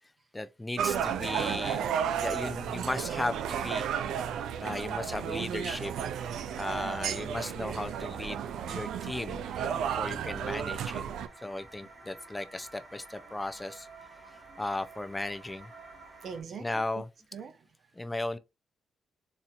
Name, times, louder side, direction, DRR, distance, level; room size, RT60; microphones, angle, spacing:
voice 1, 0.3-1.8 2.2-3.8 4.6-5.9 6.6-9.4 9.7-11.0 11.4-13.9 14.6-15.7 16.6-17.1 18.0-18.4, left 2 dB, 15° left, 0.4 m, -36 dB
sound 1, 0.8-16.4, right 3 dB, 40° right, 2.0 m, -53 dB
sound 2, 0.8-11.3, right 8 dB, 85° right, 0.4 m, -33 dB
voice 2, 10.0-10.5 11.4-11.9 13.1-13.4 14.3-14.8 15.9-18.1, right 6 dB, 60° right, 0.8 m, -48 dB
4.2 x 2.7 x 2.4 m
cardioid pair, 90°, 0 cm